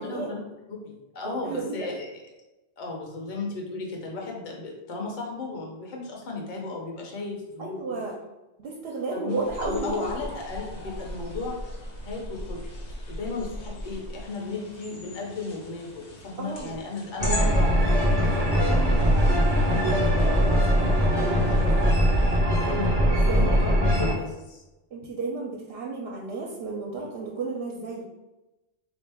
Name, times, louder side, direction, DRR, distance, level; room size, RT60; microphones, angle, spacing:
voice 1, 0.0-2.1 2.8-8.0 9.1-11.6 12.0-12.7 13.1-19.2 19.6-22.2 22.6-22.9 23.4-24.6, left 3 dB, 50° left, -1 dB, 0.8 m, -35 dB
voice 2, 1.2-1.9 7.6-8.1 8.6-10.0 16.4-16.8 20.8-20.9 22.5-22.6 23.0-23.5 24.9-28.0, right 3 dB, 70° right, -2 dB, 0.8 m, -33 dB
sound 1, 9.3-22.4, left 1 dB, 85° left, 1.2 m, -40 dB
sound 2, 17.2-24.1, equal, 40° right, 0.7 m, -21 dB
3.8 x 2.6 x 3.4 m, 1.0 s
omnidirectional pair, 1.1 m